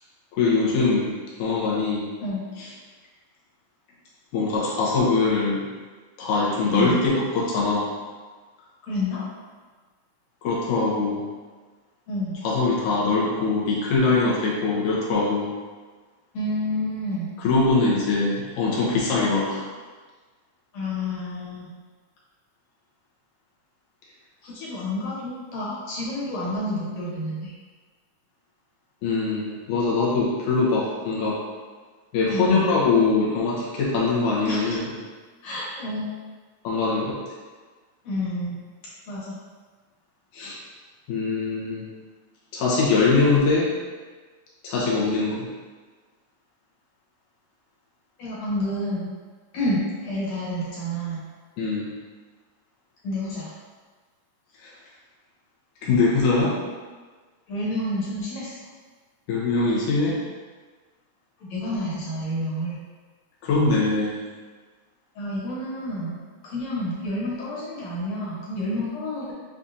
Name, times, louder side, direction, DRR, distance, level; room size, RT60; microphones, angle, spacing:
voice 1, 0.3-1.1 1.4-2.1 2.6-2.7 4.3-5.6 6.2-7.9 10.4-11.3 12.4-15.5 17.4-19.6 29.0-31.4 32.1-34.8 36.6-37.2 40.3-40.6 41.1-41.8 42.5-43.7 44.6-45.5 51.6-51.9 54.6-54.7 55.8-56.6 59.3-60.2 63.4-64.2, left 3 dB, 85° left, -5 dB, 2.3 m, -22 dB
voice 2, 8.8-9.2 12.1-12.4 16.3-17.3 20.7-21.7 24.4-27.5 32.3-32.7 34.4-34.8 35.4-36.1 38.0-38.6 39.1-39.4 48.2-49.1 49.5-51.2 53.0-53.5 57.5-58.6 61.4-62.8 65.2-69.3, left 1 dB, 65° left, -7 dB, 2.3 m, -29 dB
7.1 x 2.4 x 2.7 m, 1.4 s
omnidirectional pair, 3.4 m